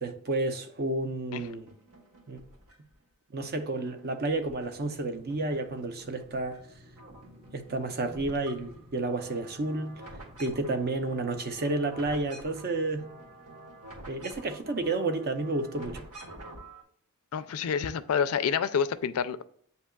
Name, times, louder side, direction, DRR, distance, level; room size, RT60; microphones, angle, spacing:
voice 1, 0.0-1.7 2.3-2.4 3.3-6.6 7.5-9.9 10.4-13.1 14.1-16.0, right 2 dB, 45° right, 0.6 m, -31 dB
sound 1, 1.5-2.9 3.4-5.0 5.3-6.6 6.9-16.8, right 1 dB, 80° right, 1.2 m, -49 dB
sound 2, 4.6-14.4, equal, 30° right, 1.4 m, -55 dB
voice 2, 17.3-19.4, left 7 dB, 70° left, 0.3 m, -28 dB
8.1 x 2.8 x 2.2 m
head